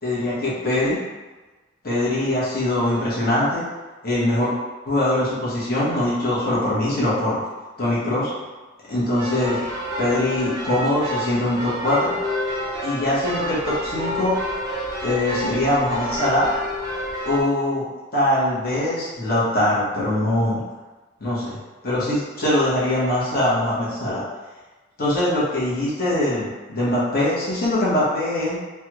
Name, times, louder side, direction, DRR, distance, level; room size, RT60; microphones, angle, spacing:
voice 1, 0.0-1.0 1.8-3.6 4.0-4.5 4.8-7.4 7.8-8.3 8.9-9.6 10.0-12.1 12.8-14.3 15.0-16.5 17.2-17.8 18.1-20.6 21.2-21.6 21.8-24.2 25.0-28.6, left 1 dB, 45° left, -8 dB, 1.1 m, -22 dB
sound 1, 9.2-17.4, equal, 20° right, 0.6 m, -29 dB
3.3 x 2.3 x 2.9 m, 1.2 s
head